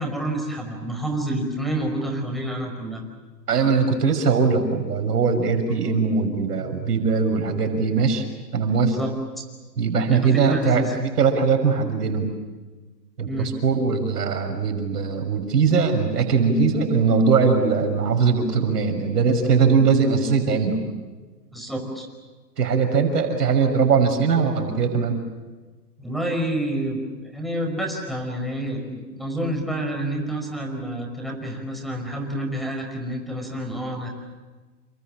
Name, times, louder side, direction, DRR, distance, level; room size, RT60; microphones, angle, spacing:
voice 1, 0.0-3.0 8.8-9.1 10.1-10.9 13.2-13.5 21.5-22.1 26.0-34.1, right 1 dB, ahead, 3 dB, 5.2 m, -28 dB
voice 2, 3.5-8.2 8.5-9.0 9.8-12.3 13.2-20.8 22.6-25.2, right 5 dB, 65° right, 5 dB, 6.1 m, -21 dB
29.5 x 27.5 x 7.4 m, 1.3 s
hypercardioid pair, 140°, 49 cm